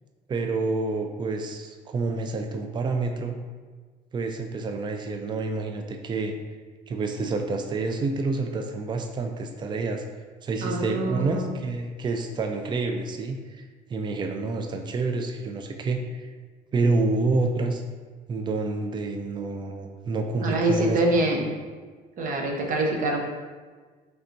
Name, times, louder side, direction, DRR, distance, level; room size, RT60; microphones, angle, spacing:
voice 1, 0.3-3.3 4.1-6.3 6.9-10.0 10.4-13.6 13.9-16.3 16.7-17.8 18.3-21.0, right 3 dB, 25° right, 5 dB, 0.4 m, -28 dB
voice 2, 10.6-11.5 20.4-21.5 22.2-23.2, right 1 dB, 50° right, 0 dB, 0.8 m, -25 dB
4.1 x 3.4 x 2.6 m, 1.4 s
cardioid pair, 110°, 17 cm